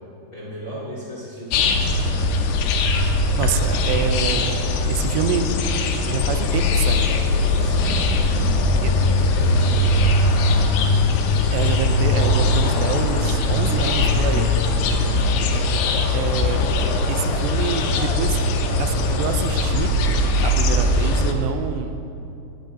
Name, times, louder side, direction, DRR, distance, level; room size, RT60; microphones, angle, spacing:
voice 1, 0.3-1.8 7.6-8.6 9.0-10.1 14.7-15.3, equal, 30° left, -7 dB, 1.7 m, -35 dB
sound 1, 1.5-21.3, left 2 dB, 80° left, 2.8 m, -20 dB
voice 2, 3.1-5.5 6.0-7.3 8.8-8.9 11.5-14.5 16.1-16.6 17.1-18.4 18.8-20.0 20.4-22.0, right 7 dB, 85° right, 8 dB, 2.8 m, -27 dB
19.0 x 9.9 x 2.8 m, 2.7 s
omnidirectional pair, 4.9 m